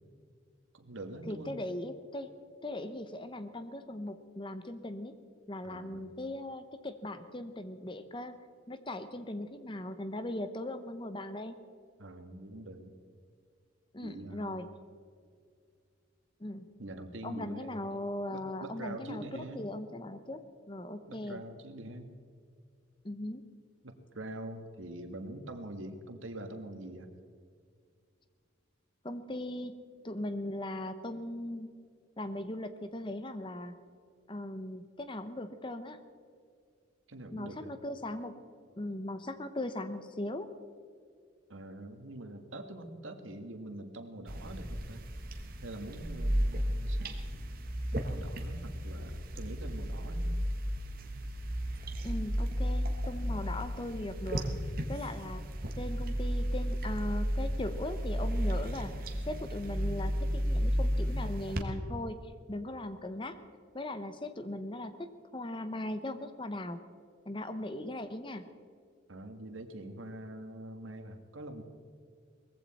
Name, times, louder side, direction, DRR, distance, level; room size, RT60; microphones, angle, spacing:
voice 1, 0.7-1.6 5.6-6.1 12.0-12.9 14.0-14.7 16.8-17.8 18.3-19.7 21.1-22.1 23.8-27.1 37.1-37.7 41.5-45.0 45.6-47.2 48.1-50.4 69.1-71.6, right 1 dB, 85° right, 7 dB, 1.7 m, -44 dB
voice 2, 1.3-2.3 2.6-5.1 5.5-8.4 8.7-11.5 13.9-14.7 16.4-16.6 17.2-19.2 19.5-20.4 20.7-21.4 23.0-23.4 29.0-29.8 30.0-31.7 32.2-33.8 34.3-36.0 37.3-38.4 38.8-40.5 52.0-54.5 54.9-55.5 55.8-58.9 59.3-63.4 63.7-65.1 65.3-66.8 67.3-68.5, left 1 dB, 25° left, 10 dB, 0.9 m, -39 dB
sound 1, 44.3-61.6, equal, 50° right, 1.5 m, -33 dB
20.0 x 15.5 x 4.3 m, 2.2 s
head